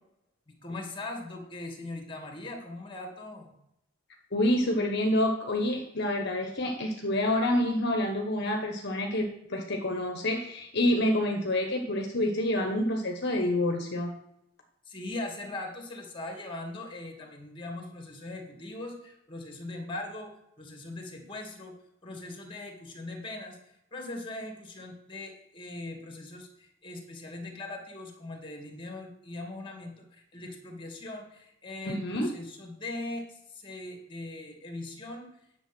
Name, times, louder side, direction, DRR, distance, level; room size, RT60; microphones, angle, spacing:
voice 1, 0.5-3.5 14.9-21.7 22.0-23.6 23.9-35.3, left 2 dB, 25° left, 2 dB, 2.3 m, -40 dB
voice 2, 4.3-14.1 31.8-32.3, left 1 dB, 55° left, 3 dB, 1.2 m, -28 dB
10.5 x 7.0 x 6.1 m, 0.80 s
head